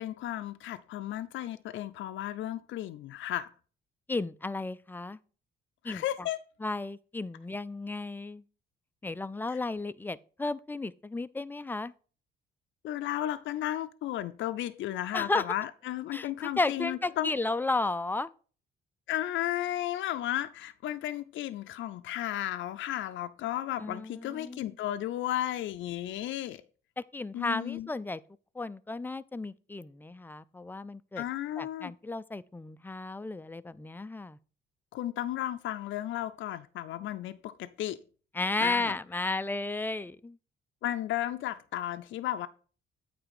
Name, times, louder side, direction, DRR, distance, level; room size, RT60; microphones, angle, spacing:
voice 1, 0.0-3.5 5.8-6.4 9.5-9.6 12.8-17.3 19.1-26.6 27.3-27.9 31.2-31.9 34.9-38.0 38.6-39.0 40.8-42.5, left 13 dB, 75° left, 0.5 m, -34 dB
voice 2, 4.1-5.2 5.8-6.0 6.6-8.4 9.0-11.9 15.1-15.4 16.1-18.3 23.8-24.7 27.0-28.2 28.6-31.2 31.6-34.4 38.3-40.4, left 3 dB, 10° left, 0.4 m, -33 dB
8.8 x 3.4 x 6.4 m
cardioid pair, 90°, 20 cm